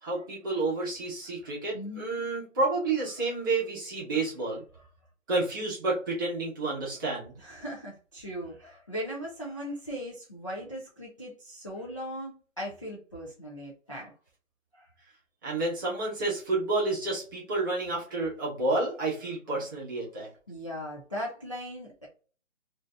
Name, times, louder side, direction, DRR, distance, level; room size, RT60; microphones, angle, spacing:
voice 1, 0.0-4.6 5.3-7.3 15.4-20.3, right 2 dB, 15° right, -5 dB, 0.8 m, -30 dB
voice 2, 1.4-2.2 3.2-3.3 4.1-4.2 4.7-4.8 7.4-14.1 14.7-14.9 20.5-22.1, equal, 25° left, -5 dB, 0.4 m, -39 dB
2.6 x 2.5 x 3.2 m, 0.38 s
hypercardioid pair, 160°, 38 cm